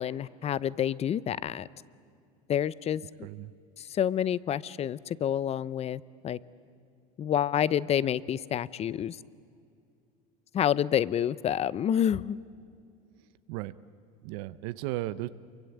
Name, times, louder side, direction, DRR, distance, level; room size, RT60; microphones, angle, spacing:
voice 1, 0.0-1.7 2.5-3.0 3.8-6.4 7.2-9.2 10.5-12.4, left 9 dB, 35° left, 20 dB, 0.7 m, -28 dB
voice 2, 14.2-15.3, right 17 dB, 75° right, 14 dB, 0.8 m, -35 dB
28.5 x 23.5 x 8.5 m, 2.4 s
supercardioid pair, 110°, 19 cm